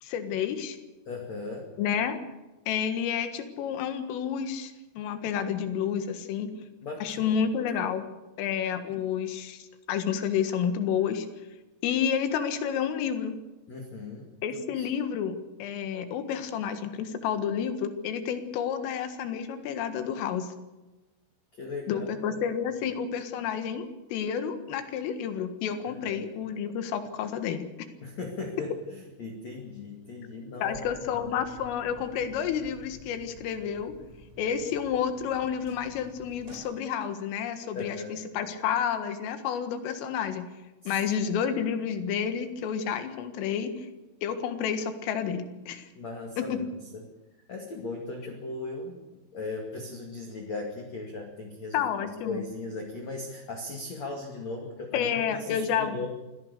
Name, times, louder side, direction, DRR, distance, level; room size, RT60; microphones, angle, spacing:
voice 1, 0.0-0.8 1.8-2.2 2.7-6.5 7.0-8.1 8.4-11.3 11.8-13.4 14.4-20.5 21.9-27.7 30.6-33.9 34.4-40.5 40.9-43.9 44.2-45.9 46.4-46.6 51.7-52.4 54.9-56.1, left 8 dB, 85° left, 8 dB, 4.3 m, -30 dB
voice 2, 1.1-1.7 6.8-7.3 7.8-7.9 13.7-14.3 14.7-14.9 21.6-22.2 25.9-26.2 28.0-30.8 31.2-31.3 37.7-38.2 40.8-40.9 46.0-46.7 46.9-47.0 47.5-49.0 49.3-51.8 52.2-56.1, left 3 dB, 45° left, 0 dB, 2.7 m, -38 dB
sound 1, 30.7-36.6, right 1 dB, 80° right, 6.8 m, -50 dB
25.5 x 17.0 x 6.8 m, 1.1 s
omnidirectional pair, 5.7 m